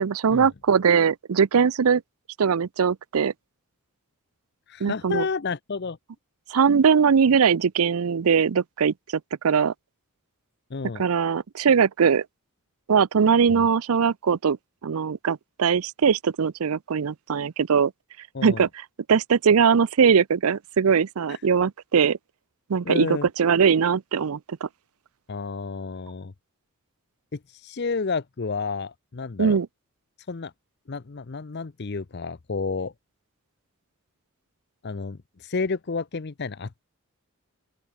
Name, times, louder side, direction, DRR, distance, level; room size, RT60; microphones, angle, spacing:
voice 1, 0.0-2.0 2.4-3.3 4.8-5.3 6.5-9.7 11.0-12.2 12.9-14.6 14.8-17.9 18.4-22.2 22.7-24.7 29.4-29.7, right 6 dB, 75° right, 0.5 m, -21 dB
voice 2, 4.7-6.0 10.7-11.0 13.6-13.7 18.3-18.6 21.3-21.4 22.9-23.3 25.3-26.3 27.3-29.6 30.3-30.5 30.9-32.9 34.8-36.8, left 4 dB, 50° left, 0.6 m, -31 dB
open air
head